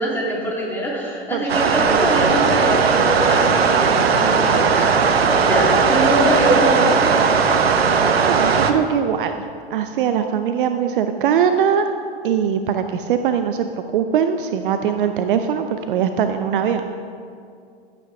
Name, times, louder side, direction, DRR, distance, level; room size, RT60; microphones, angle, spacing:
voice 1, 0.0-7.0, equal, 5° left, -4 dB, 3.0 m, -23 dB
voice 2, 1.3-1.8 8.2-9.3 9.7-11.9 12.2-13.7 13.9-16.9, right 8 dB, 55° right, 8 dB, 0.6 m, -21 dB
sound 1, 1.5-8.7, right 5 dB, 70° right, 1.0 m, -17 dB
15.0 x 8.4 x 3.7 m, 2.4 s
figure-of-eight pair, 95°, 31 cm